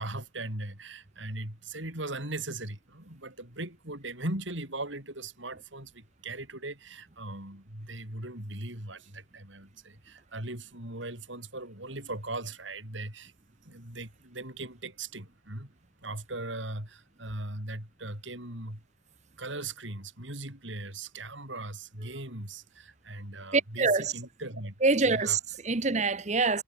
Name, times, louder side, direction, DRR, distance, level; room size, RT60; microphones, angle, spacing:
voice 1, 0.0-13.3 13.6-15.7 16.0-18.8 19.4-24.7 25.0-25.4, right 2 dB, 70° right, 7.2 m, -39 dB
voice 2, 23.5-24.1 24.8-26.6, right 3 dB, 35° right, 1.0 m, -25 dB
head